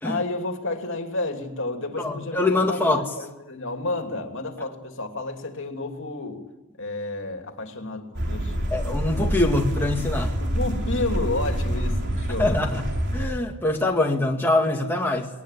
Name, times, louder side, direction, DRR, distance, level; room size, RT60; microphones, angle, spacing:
voice 1, 0.0-6.4 6.8-8.7 10.4-12.6, left 2 dB, 55° left, 4 dB, 2.9 m, -31 dB
voice 2, 2.0-3.1 8.7-10.3 12.4-12.9 13.1-15.3, left 2 dB, 10° left, 0 dB, 1.9 m, -23 dB
sound 1, 8.1-13.3, equal, 50° right, 3.5 m, -26 dB
21.5 x 19.5 x 10.0 m, 1.0 s
head